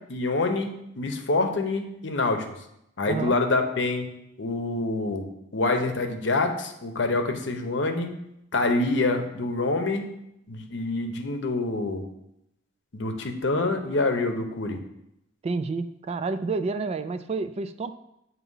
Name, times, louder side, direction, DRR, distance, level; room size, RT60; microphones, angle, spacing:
voice 1, 0.1-2.6 3.0-4.1 4.4-5.2 5.5-8.1 8.5-10.1 10.5-12.0 12.9-14.8, left 2 dB, 70° left, 5 dB, 0.8 m, -26 dB
voice 2, 3.0-3.4 15.4-17.9, right 3 dB, 35° right, 10 dB, 0.3 m, -29 dB
8.1 x 2.8 x 5.5 m, 0.81 s
head